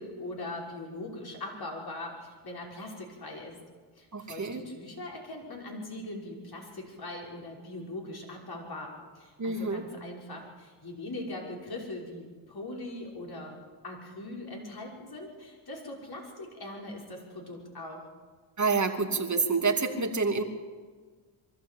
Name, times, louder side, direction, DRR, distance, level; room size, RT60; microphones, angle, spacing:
voice 1, 0.0-3.6 4.0-13.6 13.8-18.1, left 2 dB, 45° left, -1 dB, 6.0 m, -41 dB
voice 2, 4.1-4.6 9.4-9.8 18.6-20.4, right 4 dB, 35° right, 3 dB, 2.8 m, -28 dB
23.0 x 13.5 x 8.6 m, 1.5 s
supercardioid pair, 60°, 50 cm